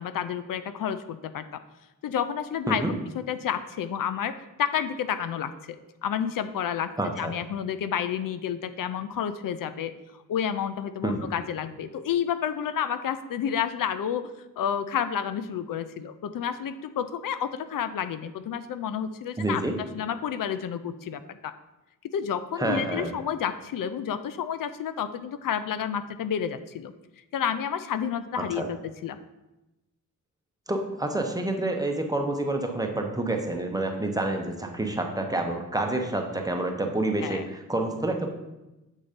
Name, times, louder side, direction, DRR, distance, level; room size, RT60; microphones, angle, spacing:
voice 1, 0.0-1.4 2.0-2.8 3.1-6.9 7.2-9.9 10.3-14.3 14.6-19.6 19.9-21.5 22.1-26.9 27.3-29.2 37.2-37.4, left 8 dB, 75° left, 12 dB, 0.5 m, -30 dB
voice 2, 7.0-7.3 11.0-11.3 19.4-19.8 22.6-23.1 28.4-28.7 30.7-38.3, right 2 dB, 10° right, 3 dB, 0.9 m, -28 dB
7.4 x 4.0 x 5.1 m, 1.0 s
wide cardioid pair, 110°, 33 cm